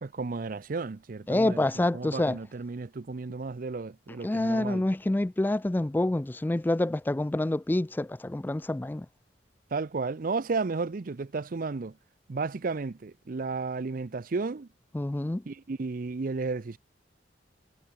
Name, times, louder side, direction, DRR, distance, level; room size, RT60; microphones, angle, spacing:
voice 1, 0.0-4.8 9.7-11.9 12.3-14.7 15.5-16.8, right 4 dB, 50° right, 0.5 m, -33 dB
voice 2, 1.3-2.4 4.2-9.1 14.9-15.4, left 1 dB, 10° left, 0.3 m, -27 dB
head